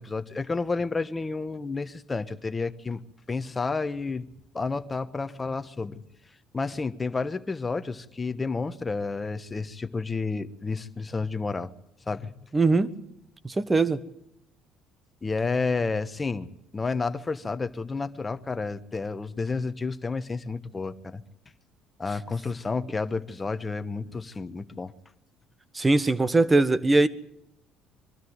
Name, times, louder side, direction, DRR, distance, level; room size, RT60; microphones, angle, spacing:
voice 1, 0.0-3.0 3.3-4.3 4.5-6.0 6.5-11.7 12.1-12.3 15.2-21.2 22.0-24.9, left 4 dB, 25° left, 1.2 m, -30 dB
voice 2, 12.5-12.9 13.4-14.0 25.7-27.1, right 3 dB, 20° right, 1.3 m, -21 dB
23.5 x 13.0 x 9.6 m
supercardioid pair, 85°, 0 cm